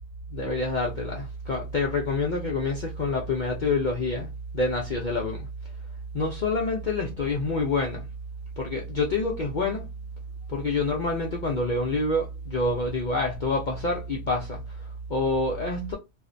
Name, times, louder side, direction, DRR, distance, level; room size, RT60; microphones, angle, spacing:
voice 1, 0.3-5.5 6.1-8.1 8.6-9.9 10.5-16.0, left 2 dB, 65° left, 0.4 m, -27 dB
2.4 x 2.1 x 2.5 m
omnidirectional pair, 1.4 m